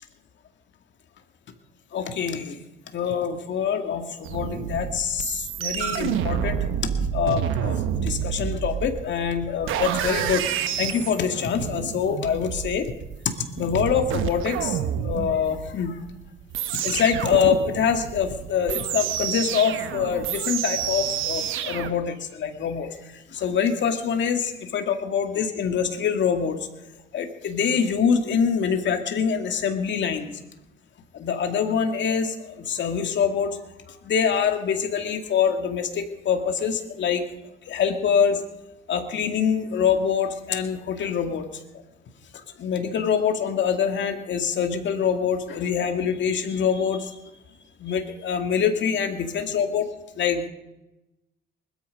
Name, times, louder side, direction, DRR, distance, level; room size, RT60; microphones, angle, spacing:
voice 1, 1.9-2.6 2.9-10.5 10.7-12.9 13.2-16.0 16.7-26.6 27.1-30.3 31.1-33.6 33.9-37.2 37.7-38.4 38.9-41.6 42.6-47.2 47.8-49.9 50.1-50.5, left 7 dB, 65° left, 5 dB, 2.2 m, -25 dB
sound 1, 4.2-21.9, right 9 dB, 90° right, 1.1 m, -29 dB
20.5 x 13.0 x 5.4 m, 0.97 s
cardioid pair, 90°, 20 cm